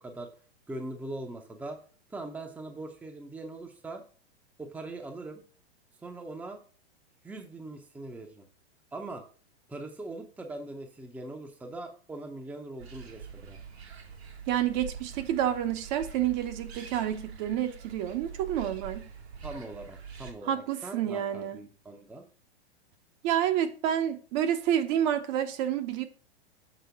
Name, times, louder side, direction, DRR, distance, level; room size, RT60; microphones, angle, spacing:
voice 1, 0.7-1.8 2.1-4.0 4.6-5.4 6.0-6.6 7.2-8.5 8.9-9.2 9.7-13.6 19.4-22.2, right 2 dB, 5° right, 0.7 m, -41 dB
sound 1, 12.8-20.3, right 7 dB, 80° right, 1.7 m, -44 dB
voice 2, 14.5-19.1 20.4-21.6 23.2-26.0, right 10 dB, 45° right, 0.9 m, -29 dB
7.0 x 3.7 x 5.7 m
hypercardioid pair, 125°, 32 cm